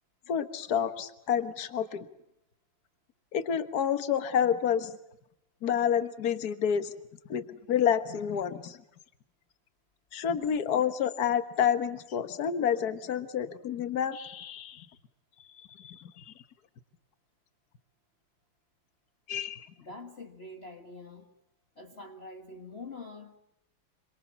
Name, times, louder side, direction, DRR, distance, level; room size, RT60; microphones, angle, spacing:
voice 1, 0.3-2.1 3.3-5.0 5.6-6.9 7.3-8.8 10.1-14.9 15.7-16.3 19.3-19.7, left 8 dB, 50° left, 10 dB, 1.8 m, -29 dB
voice 2, 19.8-21.3 21.8-23.4, left 2 dB, 30° left, 4 dB, 1.7 m, -45 dB
27.0 x 25.0 x 7.0 m, 0.84 s
omnidirectional pair, 2.4 m